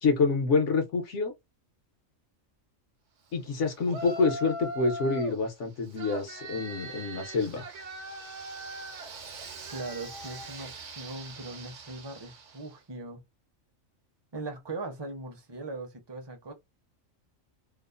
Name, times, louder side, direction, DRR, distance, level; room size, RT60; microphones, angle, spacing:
voice 1, 0.0-1.3 3.3-7.6, left 4 dB, 65° left, 1.1 m, -27 dB
Yell, 3.8-5.4 5.9-12.7, right 2 dB, 65° right, 1.1 m, -41 dB
voice 2, 9.7-13.2 14.3-16.5, right 3 dB, 30° right, 0.6 m, -40 dB
2.8 x 2.0 x 2.4 m
omnidirectional pair, 1.4 m